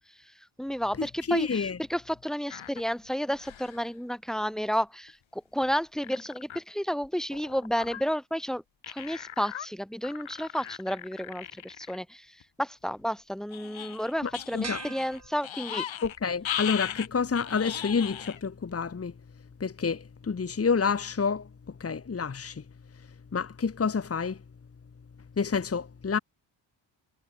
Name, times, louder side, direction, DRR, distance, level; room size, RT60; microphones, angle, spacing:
voice 1, 0.2-15.9, equal, ahead, 4.1 m, -32 dB
voice 2, 1.3-1.8 14.2-14.8 16.0-19.1 19.6-21.5 21.8-22.6 23.3-24.4 25.4-26.2, left 5 dB, 30° left, 1.6 m, -28 dB
sound 1, 2.5-2.8 3.3-3.9 4.7-4.8 5.1-5.2 5.6-5.7 6.0-6.6 7.3-8.0 8.8-9.7 10.0-12.0 12.4-12.5 13.5-16.2 16.4-18.4 18.8-18.9, left 10 dB, 70° left, 2.8 m, -38 dB
sound 2, 14.6-16.1, right 4 dB, 35° right, 5.6 m, -42 dB
cardioid pair, 100°, 48 cm